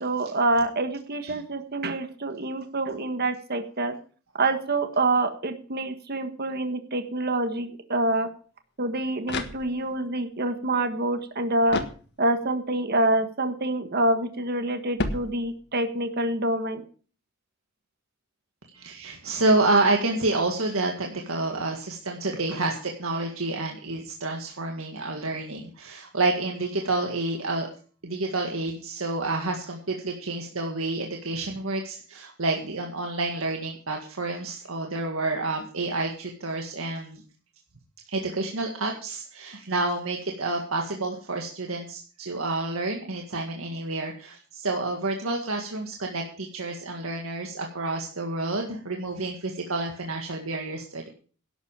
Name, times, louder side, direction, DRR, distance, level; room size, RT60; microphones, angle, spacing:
voice 1, 0.0-3.9 4.3-8.3 8.8-11.8 12.2-16.8, right 2 dB, 50° right, 8 dB, 1.6 m, -26 dB
sound 1, 8.8-10.1 11.7-12.6 15.0-15.9, left 2 dB, 55° left, 1.5 m, -33 dB
voice 2, 18.7-27.7 28.0-37.2 38.1-51.1, right 2 dB, 70° right, 1 dB, 1.9 m, -29 dB
11.5 x 8.1 x 7.5 m, 0.40 s
head